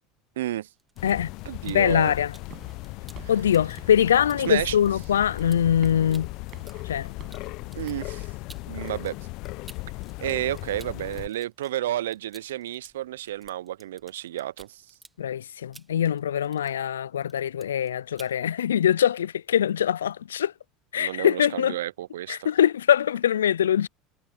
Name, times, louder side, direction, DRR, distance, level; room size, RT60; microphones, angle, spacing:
voice 1, 0.4-0.7 1.5-2.1 4.4-4.8 7.8-8.3 8.7-9.2 10.2-14.8 21.0-22.4, right 13 dB, 80° right, 0.5 m, -31 dB
sound 1, 0.7-2.5 2.8-10.1 10.4-17.0 17.2-17.9 18.1-18.4, right 3 dB, 15° right, 1.8 m, -53 dB
sound 2, 1.0-11.3, left 23 dB, 60° left, 0.8 m, -37 dB
voice 2, 1.7-2.3 3.3-6.3 6.8-7.1 15.2-20.5 20.9-21.8 22.3-23.9, left 9 dB, 85° left, 0.4 m, -23 dB
sound 3, 1.9-8.2, right 13 dB, 50° right, 6.5 m, -51 dB
hypercardioid pair, 75°, 0 cm